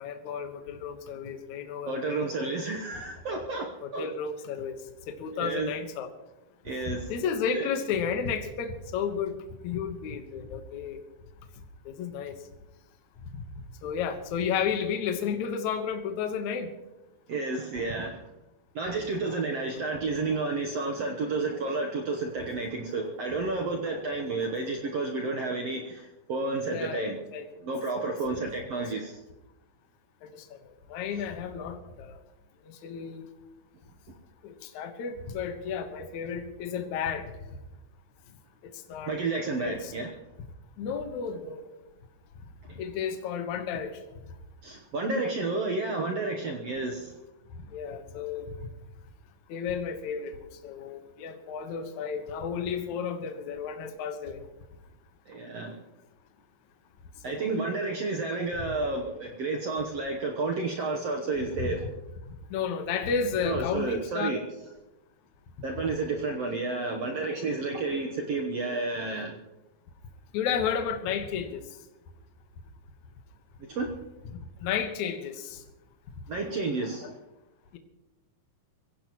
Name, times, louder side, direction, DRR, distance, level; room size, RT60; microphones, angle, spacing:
voice 1, 0.0-2.3 3.8-4.8 5.1-6.1 6.9-9.4 9.6-11.0 11.9-12.4 13.8-16.7 26.7-27.7 28.0-28.1 30.2-30.6 30.9-32.2 32.6-33.3 34.4-37.3 38.9-39.1 39.6-39.9 40.8-41.8 42.8-44.0 47.7-48.5 49.5-50.4 50.6-54.4 57.3-57.6 61.6-61.7 62.3-64.3 70.3-71.6 74.3-75.6, left 6 dB, 65° left, 6 dB, 2.3 m, -32 dB
voice 2, 1.9-4.1 5.4-5.7 6.6-7.1 7.5-7.7 17.3-18.2 18.7-27.2 27.6-29.2 39.1-40.1 42.7-42.8 44.6-47.1 55.3-55.8 57.2-61.9 63.4-64.4 65.6-69.4 73.6-73.9 76.3-77.2, right 3 dB, 70° right, 2 dB, 1.5 m, -31 dB
24.0 x 16.0 x 3.1 m, 0.99 s
omnidirectional pair, 4.4 m